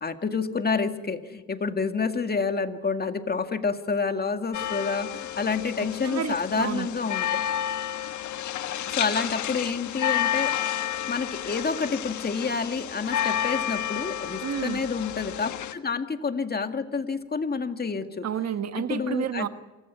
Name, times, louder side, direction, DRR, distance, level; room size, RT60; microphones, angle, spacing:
voice 1, 0.0-7.3 8.9-10.5 11.1-18.3 18.8-19.5, left 4 dB, 30° left, 7 dB, 2.0 m, -28 dB
sound 1, 4.5-15.7, left 10 dB, 75° left, 1.5 m, -31 dB
voice 2, 6.0-6.9 14.4-14.8 18.2-19.5, right 8 dB, 60° right, 10 dB, 1.4 m, -30 dB
27.5 x 15.5 x 9.4 m, 1.2 s
cardioid pair, 90°, 30 cm